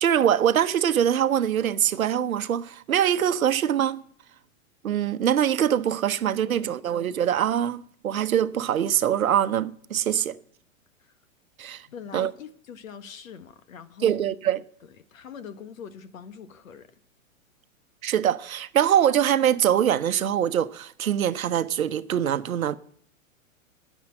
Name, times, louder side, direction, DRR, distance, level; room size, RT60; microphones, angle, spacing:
voice 1, 0.0-4.0 4.8-10.4 11.6-11.8 12.1-12.3 14.0-14.6 18.0-22.8, right 10 dB, 85° right, 0.9 m, -23 dB
voice 2, 6.5-7.0 11.0-11.1 11.9-14.3 14.8-16.9, left 7 dB, 70° left, 1.5 m, -43 dB
10.0 x 9.9 x 7.6 m
hypercardioid pair, 120°, 41 cm